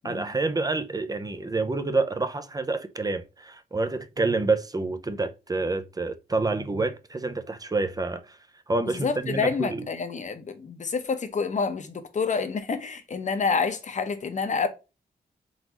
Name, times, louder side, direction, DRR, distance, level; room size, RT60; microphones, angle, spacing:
voice 1, 0.0-8.4 8.7-9.9, right 3 dB, 25° right, 0.6 m, -28 dB
voice 2, 8.9-14.7, left 5 dB, 50° left, 0.8 m, -28 dB
4.0 x 3.8 x 2.9 m
wide cardioid pair, 110°, 16 cm